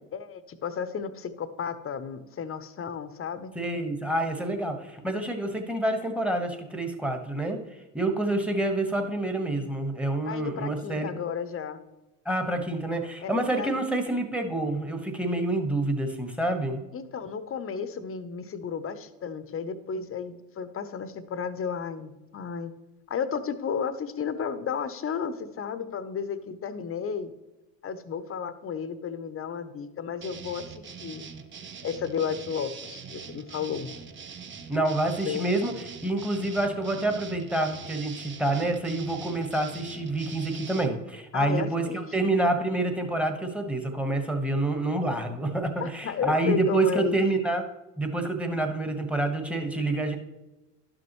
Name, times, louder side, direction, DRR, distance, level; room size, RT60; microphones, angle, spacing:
voice 1, 0.1-3.5 10.2-11.8 13.2-13.8 16.9-22.7 23.1-27.3 27.8-31.2 31.8-33.9 35.3-35.5 41.3-42.1 45.8-47.2, left 7 dB, 30° left, 12 dB, 0.8 m, -33 dB
voice 2, 3.5-7.6 7.9-11.1 12.2-16.8 34.7-47.6 48.0-50.2, right 2 dB, 5° right, 6 dB, 1.3 m, -27 dB
sound 1, 30.2-40.9, right 6 dB, 30° right, 0.8 m, -43 dB
11.5 x 6.2 x 3.0 m, 1.0 s
hypercardioid pair, 80°, 41 cm